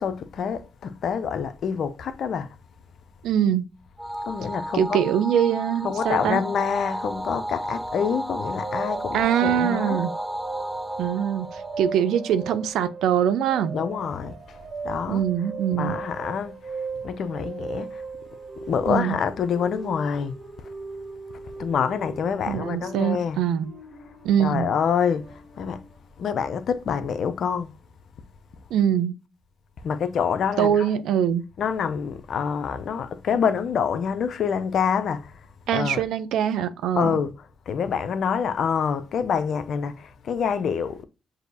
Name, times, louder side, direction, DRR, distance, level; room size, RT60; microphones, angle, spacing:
voice 1, 0.0-2.6 4.2-5.0 5.8-10.0 13.7-15.2 15.7-16.8 17.0-18.0 18.7-20.7 21.6-23.5 24.4-25.8 26.2-27.7 29.8-30.9 31.6-35.4 35.7-36.0 36.9-41.0, left 7 dB, 65° left, 0.5 m, -27 dB
voice 2, 3.2-3.7 4.7-6.4 9.1-10.1 11.0-13.7 15.1-16.0 18.9-19.2 22.5-23.7 24.2-24.7 28.7-29.1 30.6-31.4 35.7-37.2, right 9 dB, 80° right, 0.5 m, -23 dB
sound 1, 4.0-12.6, equal, 10° right, 0.4 m, -33 dB
sound 2, 8.6-26.0, right 4 dB, 45° right, 1.5 m, -38 dB
6.3 x 2.6 x 2.6 m
supercardioid pair, 60°, 0 cm